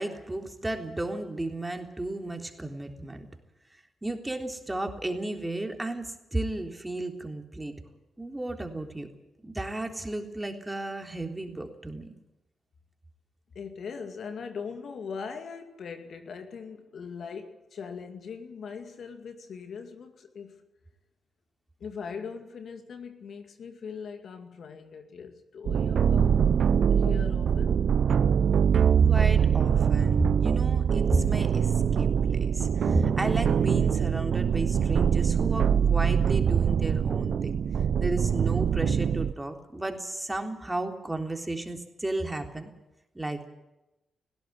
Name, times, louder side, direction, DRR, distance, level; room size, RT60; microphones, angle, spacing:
voice 1, 0.0-3.3 4.0-7.7 8.2-9.1 9.4-12.1 29.0-37.6 38.0-42.7 43.2-43.5, right 2 dB, 20° right, 4 dB, 3.6 m, -33 dB
voice 2, 13.5-20.7 21.8-26.6 26.9-27.8, left 6 dB, 65° left, 6 dB, 2.3 m, -40 dB
sound 1, 25.7-39.3, right 7 dB, 65° right, 0.9 m, -23 dB
18.5 x 16.5 x 9.8 m, 0.95 s
hypercardioid pair, 45°, 0 cm